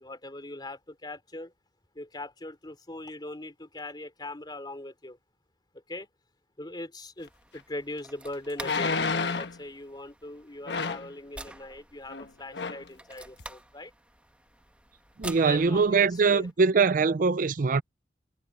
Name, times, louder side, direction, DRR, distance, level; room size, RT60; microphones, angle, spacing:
voice 1, 0.0-1.5 1.9-5.2 5.9-6.1 6.6-13.9 15.4-16.5, left 2 dB, 25° left, 3.2 m, -40 dB
sound 1, 7.2-16.5, right 1 dB, 5° right, 1.2 m, -48 dB
sound 2, 7.6-7.7 8.6-9.6 10.7-11.1 12.1-12.3 12.5-12.9 13.4-13.5, left 4 dB, 80° left, 1.3 m, -30 dB
voice 2, 15.2-17.8, right 4 dB, 50° right, 0.5 m, -22 dB
head